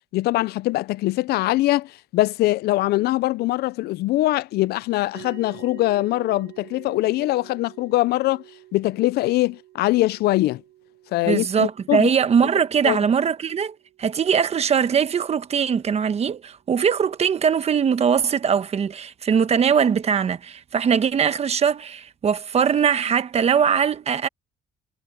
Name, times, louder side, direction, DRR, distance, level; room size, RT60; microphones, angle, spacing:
voice 1, 0.1-8.4 8.7-10.6 11.1-12.1 12.8-13.0, left 17 dB, 70° left, 0.4 m, -22 dB
sound 1, 5.1-15.7, right 16 dB, 85° right, 7.0 m, -48 dB
voice 2, 11.2-24.3, right 7 dB, 40° right, 1.2 m, -21 dB
cardioid pair, 110°, 17 cm